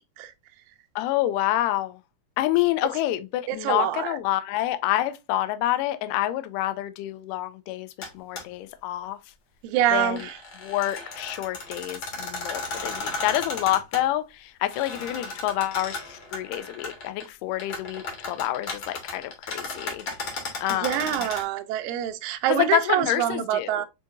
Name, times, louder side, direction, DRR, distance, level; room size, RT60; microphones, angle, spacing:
voice 1, 1.0-2.0 2.4-7.9 8.2-9.2 9.9-10.2 10.6-14.2 14.6-16.0 16.3-20.0 20.6-21.2 22.5-23.9, left 14 dB, 85° left, 2.1 m, -27 dB
voice 2, 3.5-4.2 9.6-10.4 20.8-23.9, right 11 dB, 85° right, 1.7 m, -25 dB
sound 1, 8.0-8.1 8.4-8.5 9.9-14.0 14.7-17.3 17.5-21.4, left 3 dB, 55° left, 1.6 m, -35 dB
7.1 x 2.8 x 2.5 m
omnidirectional pair, 3.9 m